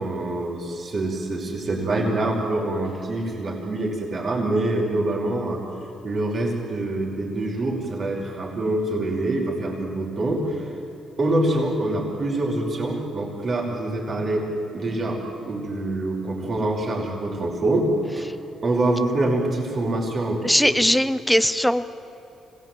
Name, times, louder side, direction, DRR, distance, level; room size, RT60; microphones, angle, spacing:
voice 1, 0.0-5.6 6.0-10.7 11.2-14.5 14.7-17.9 18.2-18.3 18.6-20.8, right 2 dB, 45° right, -1 dB, 5.5 m, -25 dB
voice 2, 20.4-21.8, equal, 5° left, 12 dB, 1.1 m, -20 dB
25.0 x 19.0 x 9.4 m, 3.0 s
cardioid pair, 90°, 0 cm